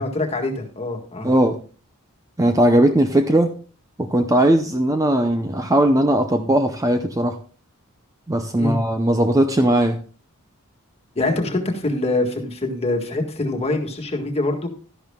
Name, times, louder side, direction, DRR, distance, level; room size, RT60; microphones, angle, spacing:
voice 1, 0.0-1.3 8.5-8.8 11.1-14.7, left 2 dB, 30° left, 3 dB, 1.7 m, -24 dB
voice 2, 1.2-1.6 2.4-3.5 4.0-7.4 8.3-10.0, right 1 dB, 15° right, 7 dB, 0.6 m, -18 dB
12.5 x 11.0 x 2.3 m, 0.39 s
head